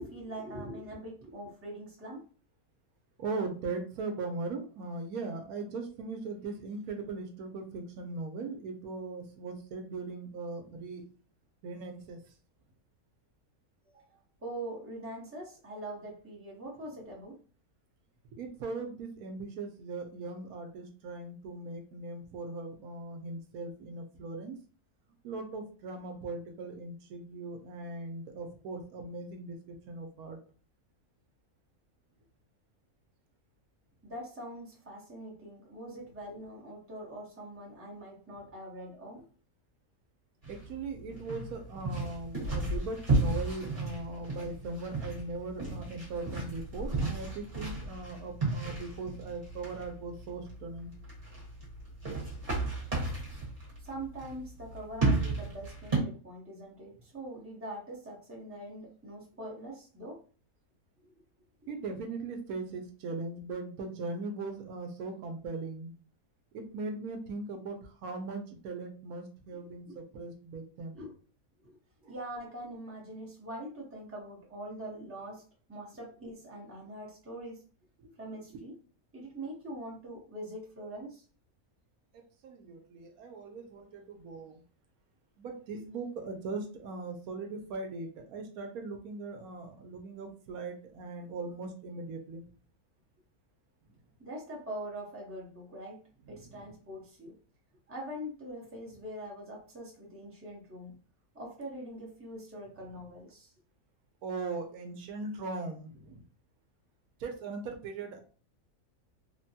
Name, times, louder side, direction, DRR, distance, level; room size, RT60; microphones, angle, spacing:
voice 1, 0.0-2.2 13.9-14.0 14.4-17.4 34.0-39.2 53.8-60.2 69.5-70.0 70.9-71.1 71.6-71.8 72.1-75.4 75.7-77.6 78.2-78.7 79.1-81.2 94.2-97.3 97.9-101.0 101.3-103.5, right 1 dB, 10° right, -4 dB, 0.8 m, -43 dB
voice 2, 3.2-11.0 11.6-12.2 18.3-24.6 25.2-30.4 40.5-50.9 61.7-65.9 66.5-71.0 72.0-72.1 78.0-78.1 82.1-84.6 85.4-92.4 96.4-96.7 104.2-106.2 107.2-108.2, right 3 dB, 80° right, 5 dB, 1.1 m, -39 dB
sound 1, 40.4-56.0, right 2 dB, 35° right, 1.4 m, -34 dB
3.3 x 2.2 x 2.7 m, 0.39 s
omnidirectional pair, 1.5 m